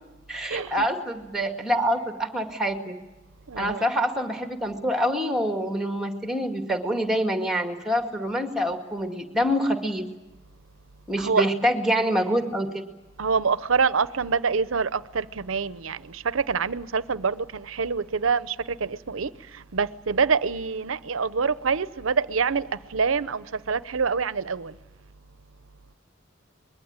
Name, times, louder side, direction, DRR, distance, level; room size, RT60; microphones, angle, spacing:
voice 1, 0.3-3.0 3.6-10.0 11.1-12.9, equal, 5° right, 4 dB, 2.2 m, -26 dB
voice 2, 3.5-3.8 11.2-11.4 13.2-16.0 16.2-18.5 18.8-19.3 19.7-22.6 22.9-24.7, right 5 dB, 90° right, 16 dB, 0.7 m, -25 dB
24.0 x 21.5 x 8.9 m, 1.1 s
head